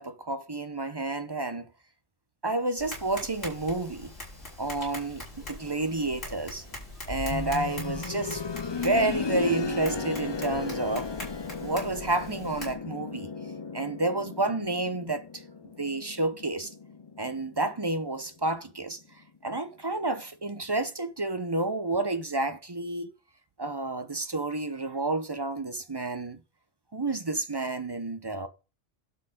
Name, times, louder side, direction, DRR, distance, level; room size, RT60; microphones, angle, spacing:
voice 1, 0.0-1.7 2.4-4.1 4.6-6.6 7.1-8.4 8.7-11.1 11.6-13.3 13.7-15.4 15.8-16.7 17.2-19.0 19.4-23.1 23.6-26.4 26.9-28.5, right 2 dB, 25° right, 0.7 m, -30 dB
Tap, 2.8-12.7, left 1 dB, 55° left, 5.2 m, -42 dB
sound 1, 7.3-18.1 18.4-18.5 19.4-19.5, left 4 dB, 40° left, 0.4 m, -35 dB
11.5 x 3.9 x 6.5 m
omnidirectional pair, 1.3 m